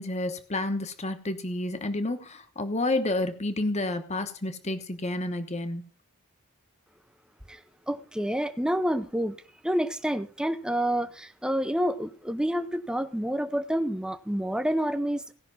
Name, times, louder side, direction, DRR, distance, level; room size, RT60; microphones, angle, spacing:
voice 1, 0.0-5.8, left 2 dB, 30° left, 9 dB, 1.1 m, -30 dB
voice 2, 7.9-9.4 9.6-15.3, equal, 5° right, 10 dB, 0.7 m, -28 dB
17.0 x 5.9 x 5.5 m, 0.40 s
head